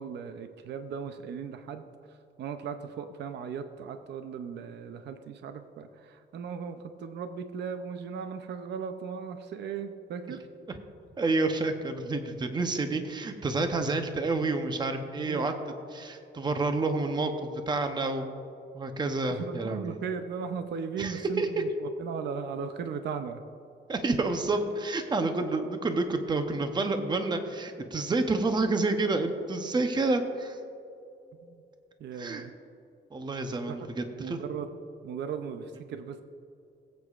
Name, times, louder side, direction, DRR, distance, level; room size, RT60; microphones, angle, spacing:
voice 1, 0.0-10.5 15.2-15.6 19.3-23.4 31.4-31.6 32.0-32.5 33.7-33.8 34.2-34.7 35.0-36.2, right 6 dB, 65° right, 8 dB, 0.6 m, -37 dB
voice 2, 11.2-15.5 15.9-18.3 18.7-20.0 21.0-21.5 23.9-30.6 32.2-32.4 33.1-34.4, right 3 dB, 25° right, 6 dB, 0.7 m, -29 dB
21.0 x 8.2 x 2.4 m, 2.7 s
cardioid pair, 135°, 19 cm